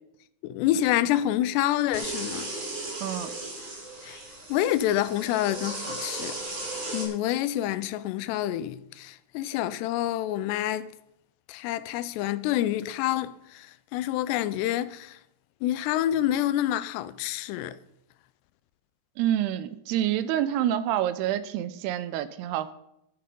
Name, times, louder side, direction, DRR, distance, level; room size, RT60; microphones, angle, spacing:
voice 1, 0.4-2.5 4.0-4.2 4.5-6.4 6.9-10.9 11.5-15.2 15.6-17.8, left 13 dB, 90° left, 2.7 m, -27 dB
sound 1, 1.9-7.0, right 2 dB, 35° right, 3.5 m, -36 dB
voice 2, 3.0-3.3 19.2-22.7, right 11 dB, 85° right, 2.6 m, -27 dB
11.0 x 10.0 x 5.3 m
omnidirectional pair, 4.7 m